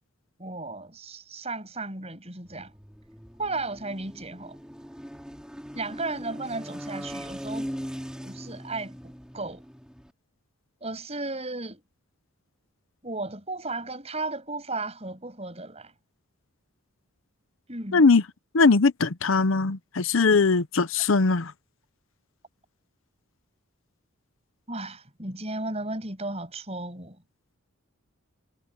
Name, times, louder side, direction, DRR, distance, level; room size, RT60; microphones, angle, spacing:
voice 1, 0.4-2.7 3.4-4.6 5.7-7.7 8.2-9.6 10.8-11.8 13.0-15.9 17.7-18.1 24.7-27.2, right 2 dB, 30° right, 7.0 m, -35 dB
sound 1, 2.5-10.1, equal, 5° right, 5.4 m, -40 dB
voice 2, 17.9-18.2 18.5-21.5, left 4 dB, 65° left, 0.7 m, -20 dB
head